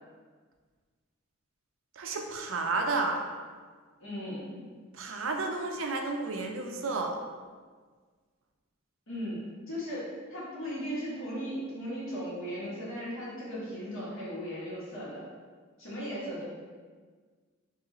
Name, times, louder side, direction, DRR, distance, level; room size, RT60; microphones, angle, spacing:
voice 1, 2.0-3.2 4.9-7.2, right 3 dB, 75° right, 3 dB, 0.5 m, -31 dB
voice 2, 4.0-4.4 9.1-15.2 15.8-16.4, equal, 80° left, -8 dB, 1.5 m, -37 dB
3.0 x 2.7 x 3.7 m, 1.5 s
head